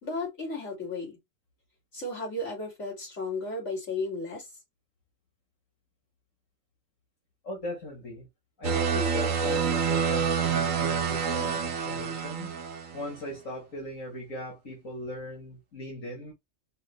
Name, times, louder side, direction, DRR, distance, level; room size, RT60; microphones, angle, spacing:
voice 1, 0.0-1.2 1.9-4.5, left 2 dB, 65° left, 3.3 m, -34 dB
voice 2, 7.4-8.3 8.6-12.6 12.9-16.3, left 1 dB, 80° left, 2.2 m, -38 dB
sound 1, 8.6-13.1, right 6 dB, 85° right, 1.3 m, -27 dB
5.5 x 2.4 x 3.3 m
omnidirectional pair, 1.3 m